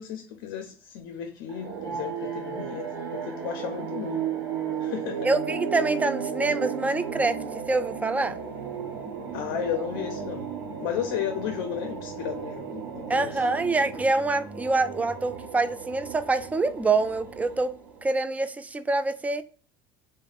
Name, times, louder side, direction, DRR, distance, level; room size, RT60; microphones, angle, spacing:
voice 1, 0.0-4.3 4.8-5.3 9.3-10.5 10.8-13.5, left 9 dB, 75° left, 0.5 m, -34 dB
sound 1, 1.5-18.1, right 7 dB, 80° right, 0.9 m, -35 dB
voice 2, 5.2-7.4 7.7-8.4 13.1-17.7 18.0-19.4, right 3 dB, 15° right, 0.3 m, -25 dB
3.2 x 2.1 x 2.4 m
supercardioid pair, 85°, 11 cm